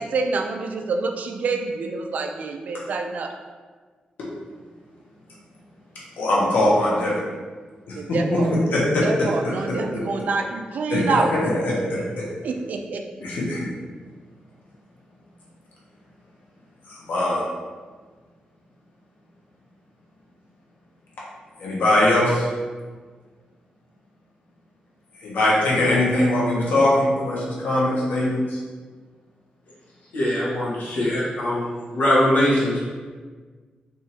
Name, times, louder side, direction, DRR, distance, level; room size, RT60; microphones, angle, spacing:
voice 1, 0.0-3.3 7.9-8.5 9.0-11.3 12.4-13.0, right 4 dB, 65° right, 4 dB, 0.4 m, -26 dB
voice 2, 6.2-7.1 7.9-8.0 8.3-8.4 8.7-9.3 9.7-9.8 10.9-11.0 11.9-12.3 13.2-13.7 16.9-17.4 21.6-22.5 25.2-28.6, left 1 dB, 90° left, -6 dB, 1.2 m, -21 dB
voice 3, 30.1-32.8, left 1 dB, 70° left, -7 dB, 1.4 m, -22 dB
3.6 x 2.8 x 4.3 m, 1.5 s
cardioid pair, 105°, 3 cm